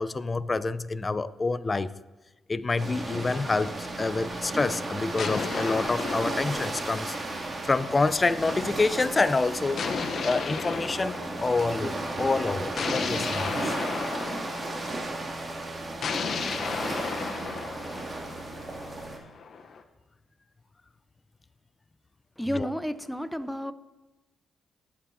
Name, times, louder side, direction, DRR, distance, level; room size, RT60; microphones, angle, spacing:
voice 1, 0.0-1.9 2.5-7.1 7.6-9.9 10.2-11.9 12.2-13.8 22.5-22.7, left 3 dB, 30° left, 0.6 m, -27 dB
sound 1, 2.8-19.2, right 2 dB, 40° right, 2.5 m, -34 dB
sound 2, 3.3-4.4 5.2-7.8 9.8-11.9 12.8-15.1 16.0-19.8, left 5 dB, 60° left, 0.9 m, -34 dB
voice 2, 22.4-23.7, equal, ahead, 0.8 m, -31 dB
21.0 x 8.6 x 2.8 m
supercardioid pair, 60°, 0 cm